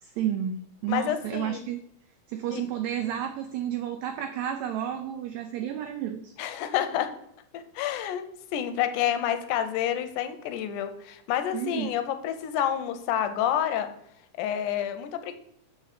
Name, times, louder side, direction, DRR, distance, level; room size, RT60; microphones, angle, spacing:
voice 1, 0.0-1.8 2.3-6.3 11.5-12.0, right 10 dB, 85° right, 7 dB, 1.6 m, -31 dB
voice 2, 0.9-1.7 2.5-2.6 6.4-7.1 7.5-13.9 14.3-15.3, left 10 dB, 80° left, 9 dB, 2.1 m, -29 dB
6.8 x 5.0 x 4.1 m, 0.74 s
omnidirectional pair, 3.7 m